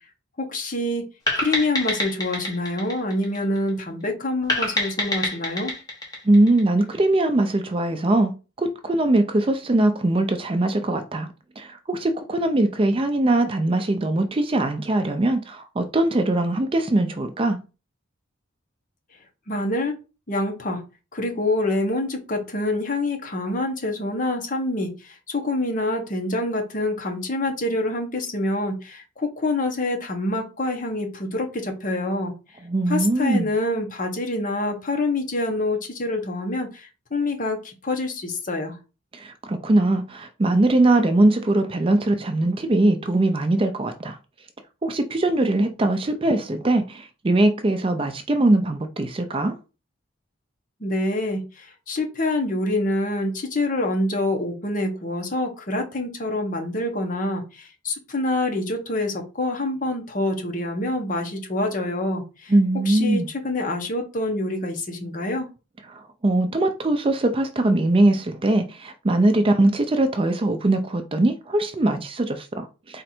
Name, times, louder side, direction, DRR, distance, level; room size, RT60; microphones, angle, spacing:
voice 1, 0.4-1.1 1.3-5.7 19.5-19.9 20.3-20.8 21.1-32.3 32.9-38.8 50.8-62.5 62.9-65.5, left 2 dB, 40° left, 1.0 m, -26 dB
sound 1, 1.3-3.8 4.5-7.0, left 1 dB, 20° left, 1.4 m, -27 dB
voice 2, 6.2-8.3 8.6-11.3 11.6-17.6 32.6-33.5 39.1-44.2 44.8-49.6 62.5-63.3 65.9-73.0, right 2 dB, 25° right, 0.4 m, -21 dB
4.2 x 2.5 x 4.2 m
head